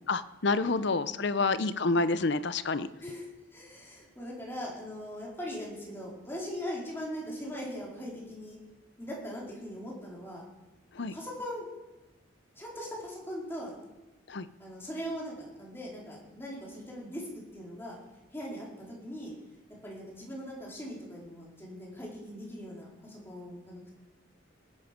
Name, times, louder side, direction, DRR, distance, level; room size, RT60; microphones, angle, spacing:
voice 1, 0.1-2.9 10.9-11.1 14.3-14.5, left 3 dB, 60° left, 14 dB, 0.7 m, -28 dB
voice 2, 3.0-8.6 9.0-10.4 11.0-11.7 12.6-13.8 14.6-17.3 17.5-18.0 18.3-19.3 19.8-23.9, equal, 10° left, -4 dB, 4.3 m, -40 dB
19.5 x 10.5 x 5.2 m, 1.0 s
head